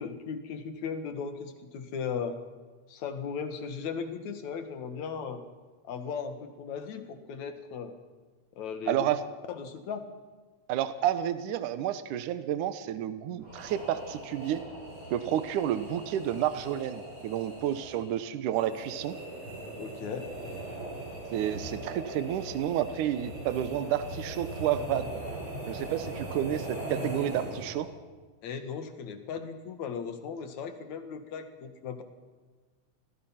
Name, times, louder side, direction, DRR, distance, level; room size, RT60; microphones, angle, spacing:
voice 1, 0.0-2.4 2.9-5.4 5.8-8.0 8.6-9.1 9.5-10.1 19.8-20.3 28.4-32.0, left 6 dB, 60° left, 8 dB, 2.9 m, -37 dB
voice 2, 8.9-9.2 10.7-14.6 15.1-19.1 21.3-25.1 25.7-27.9, right 11 dB, 75° right, 12 dB, 2.4 m, -30 dB
sound 1, 13.4-28.0, right 1 dB, 40° right, 7.2 m, -40 dB
27.0 x 19.5 x 5.9 m, 1.3 s
omnidirectional pair, 3.9 m